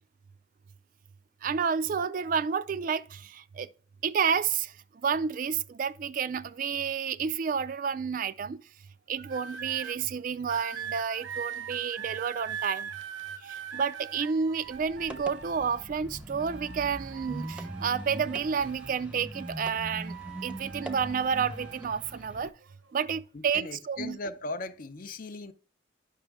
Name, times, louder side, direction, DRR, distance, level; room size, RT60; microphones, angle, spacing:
voice 1, 1.4-3.7 4.0-4.8 5.0-8.6 9.1-12.9 13.4-20.1 20.4-22.5 22.9-24.2, right 6 dB, 45° right, 0.3 m, -30 dB
sound 1, 9.2-10.0 10.5-16.0 16.4-19.0 19.3-21.8 22.6-22.9, right 8 dB, 85° right, 0.8 m, -41 dB
sound 2, 14.6-22.5, right 1 dB, 5° right, 0.7 m, -42 dB
voice 2, 23.3-25.5, left 2 dB, 45° left, 0.5 m, -38 dB
9.9 x 6.1 x 3.5 m
head